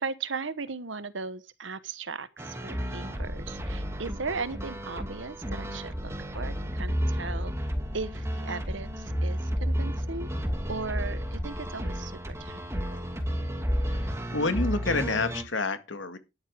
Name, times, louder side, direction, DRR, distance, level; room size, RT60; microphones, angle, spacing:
voice 1, 0.0-7.7 7.9-10.3 10.7-12.6 12.9-13.0, right 4 dB, 75° right, 1.1 m, -37 dB
sound 1, 2.4-15.4, equal, 15° right, 2.5 m, -32 dB
voice 2, 13.9-16.2, left 3 dB, 75° left, 1.9 m, -29 dB
12.5 x 11.0 x 3.7 m
head